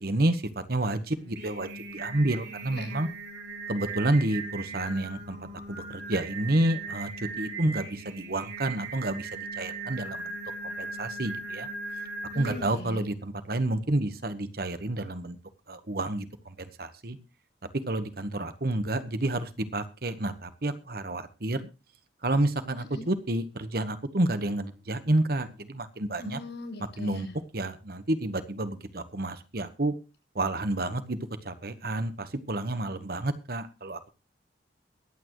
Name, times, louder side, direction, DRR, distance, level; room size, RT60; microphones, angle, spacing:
voice 1, 0.0-3.1 3.7-5.4 5.7-7.1 7.4-10.4 10.6-11.7 12.4-15.4 15.7-17.2 17.9-21.6 22.2-26.4 27.0-27.3 27.5-29.9 30.3-31.2 31.4-34.0, right 1 dB, 55° right, 11 dB, 1.2 m, -29 dB
Singing, 1.1-12.9, right 3 dB, 85° right, 5.4 m, -39 dB
voice 2, 12.3-13.1 22.9-23.1 26.2-27.4, left 1 dB, 75° left, 4 dB, 6.9 m, -40 dB
22.5 x 8.8 x 3.1 m, 0.29 s
head